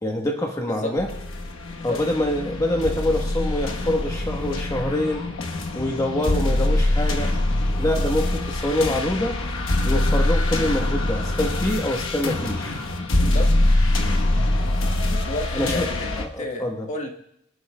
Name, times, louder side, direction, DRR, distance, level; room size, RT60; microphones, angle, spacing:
voice 1, 0.0-1.1 1.8-5.3 5.7-7.4 7.8-9.4 9.8-12.8 15.5-15.9 16.2-16.9, left 1 dB, 15° left, 1 dB, 1.1 m, -25 dB
sound 1, 1.0-16.3, left 1 dB, 70° left, 1.1 m, -24 dB
voice 2, 1.7-2.0 4.5-4.7 13.2-13.5 15.1-17.1, left 2 dB, 35° left, 2 dB, 1.4 m, -32 dB
26.0 x 11.0 x 2.2 m, 0.75 s
head